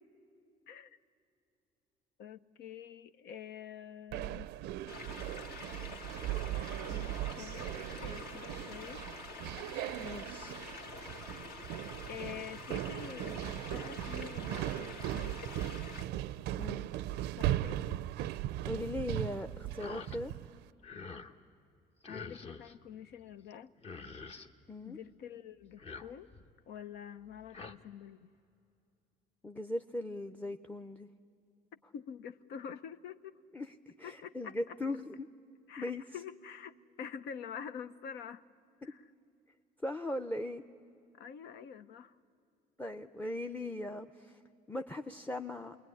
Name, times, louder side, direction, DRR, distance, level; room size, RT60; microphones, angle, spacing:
voice 1, 0.7-1.0 2.2-4.5 6.9-9.1 12.1-15.4 17.4-18.0 22.1-23.7 24.8-26.3 26.7-28.3 31.9-33.4 34.0-34.8 35.7-38.4 38.8-39.0 41.2-42.2, left 8 dB, 80° left, 12 dB, 0.8 m, -47 dB
sound 1, 4.1-20.6, right 13 dB, 85° right, 0.5 m, -38 dB
sound 2, 4.9-16.0, left 4 dB, 65° left, 2.2 m, -47 dB
voice 2, 10.0-10.6 16.6-16.9 18.6-20.3 24.7-25.0 29.4-31.1 33.5-35.3 35.8-36.0 38.8-38.9 39.8-40.6 42.8-44.4 44.7-45.8, left 1 dB, 10° left, 8 dB, 0.6 m, -39 dB
sound 3, 19.8-20.2 20.6-21.3 22.0-22.8 23.5-23.6 23.8-24.5 25.6-26.5 27.3-27.7, left 4 dB, 35° left, 1.1 m, -47 dB
28.0 x 21.0 x 9.9 m, 2.6 s
cardioid pair, 110°, 17 cm